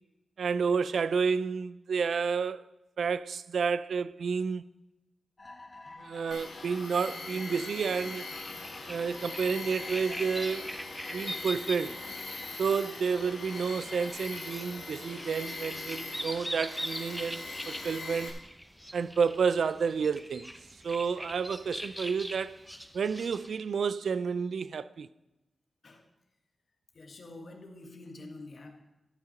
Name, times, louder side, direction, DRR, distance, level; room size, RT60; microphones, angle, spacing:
voice 1, 0.4-2.6 3.0-4.6 6.0-8.3 8.9-10.8 11.1-12.0 12.6-18.4 18.9-20.5 20.8-22.6 22.9-25.1, right 5 dB, 90° right, 0.3 m, -30 dB
sound 1, 5.4-14.1, left 2 dB, 40° left, 1.4 m, -50 dB
Tools, 6.3-18.3, left 3 dB, 80° left, 2.0 m, -41 dB
sound 2, 8.4-23.6, equal, ahead, 0.6 m, -43 dB
voice 2, 26.9-28.8, left 2 dB, 60° left, 1.5 m, -47 dB
13.0 x 5.8 x 5.7 m
wide cardioid pair, 105°, 0 cm